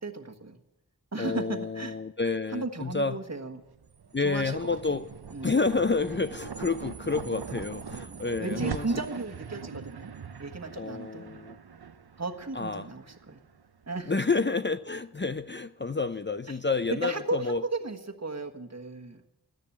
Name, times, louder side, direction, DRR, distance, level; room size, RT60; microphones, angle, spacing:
voice 1, 0.0-0.6 1.1-1.9 2.5-3.6 4.2-4.6 5.3-5.5 8.1-10.1 10.4-11.3 12.2-13.4 13.9-14.1 16.5-16.6 16.9-19.3, right 3 dB, 45° right, 4 dB, 1.5 m, -35 dB
voice 2, 1.2-3.2 4.1-5.1 5.4-8.9 10.8-11.6 12.5-12.9 14.1-17.7, left 4 dB, 30° left, 11 dB, 0.5 m, -29 dB
sound 1, 3.6-14.2, right 6 dB, 80° right, 0.8 m, -41 dB
13.5 x 10.5 x 9.8 m, 0.95 s
wide cardioid pair, 50°, 38 cm